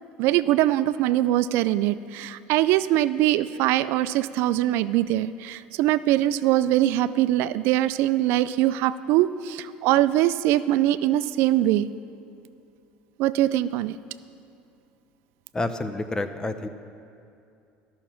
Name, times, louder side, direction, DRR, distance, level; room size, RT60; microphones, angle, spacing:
voice 1, 0.2-11.9 13.2-14.0, right 14 dB, 70° right, 15 dB, 0.3 m, -22 dB
voice 2, 15.5-16.7, left 2 dB, 15° left, 10 dB, 0.6 m, -29 dB
13.0 x 6.1 x 5.8 m, 2.6 s
supercardioid pair, 100°, 4 cm